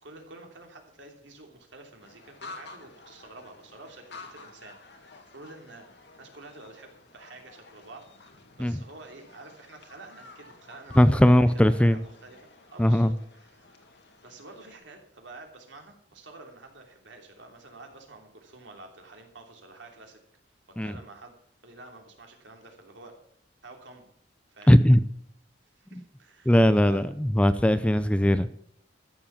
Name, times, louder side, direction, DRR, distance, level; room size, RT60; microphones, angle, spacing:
voice 1, 0.0-13.8 14.2-20.2 20.7-21.3 21.6-23.1 23.6-24.1 24.5-24.8 25.7-27.0, right 2 dB, 75° right, 3 dB, 3.1 m, -49 dB
sound 1, 2.0-14.8, left 3 dB, 65° left, 2.1 m, -51 dB
voice 2, 11.0-12.0 12.8-13.2 20.8-20.9 24.7-25.0 26.5-28.5, equal, 5° left, 13 dB, 0.5 m, -19 dB
14.0 x 7.3 x 7.3 m, 0.67 s
head